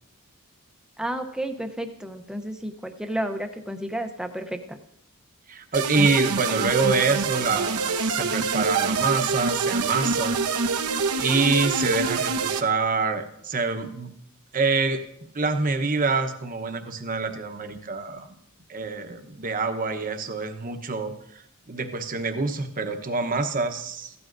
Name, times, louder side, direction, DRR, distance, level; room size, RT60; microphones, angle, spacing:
voice 1, 1.0-4.8, right 1 dB, 5° right, 6 dB, 0.7 m, -31 dB
voice 2, 5.5-10.4 11.2-14.1 14.5-15.0 15.3-18.4 18.7-24.1, right 4 dB, 40° right, 6 dB, 1.0 m, -26 dB
sound 1, 5.7-12.6, right 5 dB, 80° right, 0.9 m, -26 dB
16.5 x 12.5 x 2.6 m, 0.77 s
head